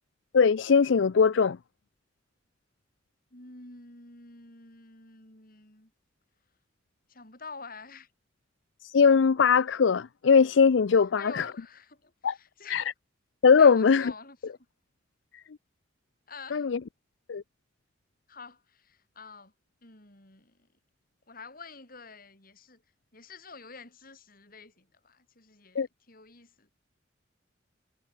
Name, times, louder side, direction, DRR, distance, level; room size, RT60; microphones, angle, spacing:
voice 1, 0.3-1.6 8.8-11.4 12.2-12.3 12.7-12.8 13.4-14.1 16.5-16.8 17.3-17.4 25.8-25.9, left 5 dB, 75° left, 0.5 m, -21 dB
voice 2, 3.3-5.9 7.1-8.1 11.2-12.9 13.6-14.7 16.3-16.7 18.3-19.5 19.8-20.6 21.3-22.8 23.1-26.7, left 4 dB, 50° left, 7.0 m, -48 dB
head